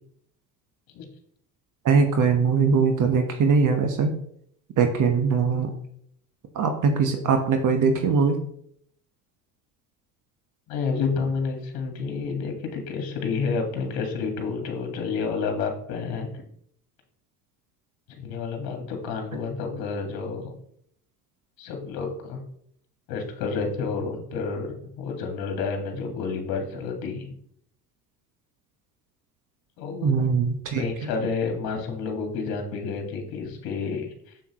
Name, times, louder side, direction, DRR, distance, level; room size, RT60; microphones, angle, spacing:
voice 1, 1.8-4.1 4.8-5.7 6.5-8.4 30.0-30.9, right 5 dB, 45° right, 5 dB, 1.2 m, -21 dB
voice 2, 10.7-16.4 18.1-20.5 21.6-22.4 23.1-27.3 29.8-30.3 30.8-34.1, left 5 dB, 55° left, 4 dB, 1.8 m, -30 dB
7.1 x 6.9 x 3.0 m, 0.68 s
hypercardioid pair, 65°, 45 cm